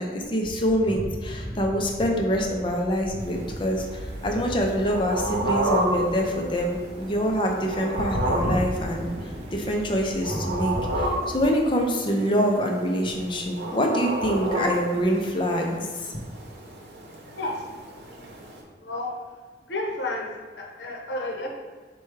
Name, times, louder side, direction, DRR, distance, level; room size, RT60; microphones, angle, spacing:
voice 1, 0.0-3.9 4.2-9.1 9.5-15.9, equal, 30° left, 1 dB, 0.5 m, -25 dB
sound 1, 0.6-11.1, equal, 30° right, 0.4 m, -36 dB
sound 2, 3.2-18.6, right 1 dB, 65° right, 0.8 m, -32 dB
voice 2, 18.8-19.1 19.7-20.3 20.6-21.5, left 2 dB, 75° left, -1 dB, 0.8 m, -31 dB
4.4 x 2.3 x 4.6 m, 1.5 s
head